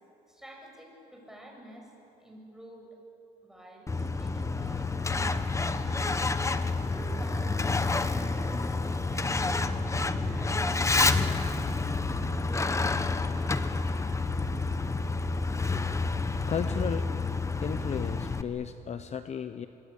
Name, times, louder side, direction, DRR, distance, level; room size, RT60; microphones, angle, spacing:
voice 1, 0.3-1.9 2.2-3.0 3.4-6.1 6.8-11.9 12.4-13.7, right 1 dB, 5° right, 0 dB, 6.9 m, -50 dB
Truck, 3.9-18.4, left 3 dB, 15° left, 1.1 m, -29 dB
voice 2, 16.5-17.1 17.6-19.7, left 8 dB, 40° left, 10 dB, 0.9 m, -34 dB
25.5 x 23.0 x 8.7 m, 2.9 s
cardioid pair, 110°, 17 cm